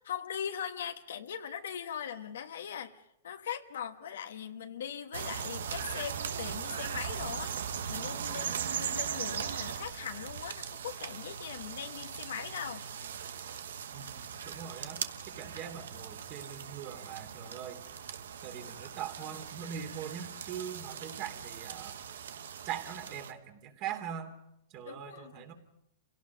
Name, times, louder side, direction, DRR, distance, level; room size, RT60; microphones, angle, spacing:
voice 1, 0.0-3.0 3.2-12.8 24.8-25.4, left 8 dB, 85° left, 6 dB, 1.3 m, -40 dB
sound 1, 5.1-23.3, right 8 dB, 85° right, 1.2 m, -39 dB
voice 2, 13.9-17.8 18.4-22.0 22.6-24.3 24.7-25.5, right 8 dB, 40° right, 5 dB, 3.0 m, -42 dB
28.5 x 17.5 x 5.3 m, 0.80 s
hypercardioid pair, 140°, 0 cm